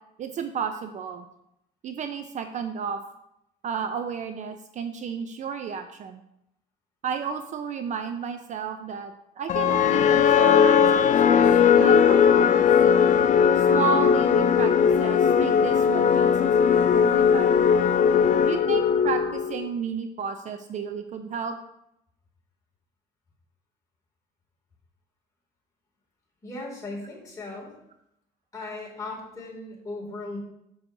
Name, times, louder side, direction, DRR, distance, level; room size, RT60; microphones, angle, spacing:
voice 1, 0.2-1.3 1.8-3.0 3.6-6.2 7.0-11.4 11.7-12.7 13.6-17.7 18.4-21.6, right 6 dB, 45° right, 8 dB, 0.5 m, -32 dB
sound 1, 9.5-19.7, left 7 dB, 50° left, 0.4 m, -19 dB
voice 2, 26.4-27.7 28.5-30.4, left 2 dB, 20° left, -4 dB, 2.5 m, -37 dB
7.1 x 6.4 x 2.7 m, 0.81 s
cardioid pair, 110°, 17 cm